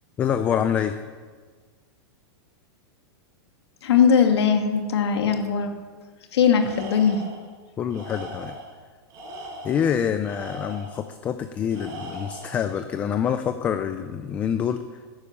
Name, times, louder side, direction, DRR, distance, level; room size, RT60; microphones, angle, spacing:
voice 1, 0.2-1.0 7.8-8.6 9.6-15.0, left 8 dB, 10° left, 9 dB, 0.4 m, -26 dB
voice 2, 3.8-5.7 6.3-7.2, left 7 dB, 75° left, 4 dB, 2.6 m, -20 dB
Tools, 6.5-7.4 7.9-8.7 9.1-11.0 11.7-12.6, right 1 dB, 25° right, 5.0 m, -39 dB
14.0 x 12.0 x 8.5 m, 1.5 s
supercardioid pair, 175°, 14 cm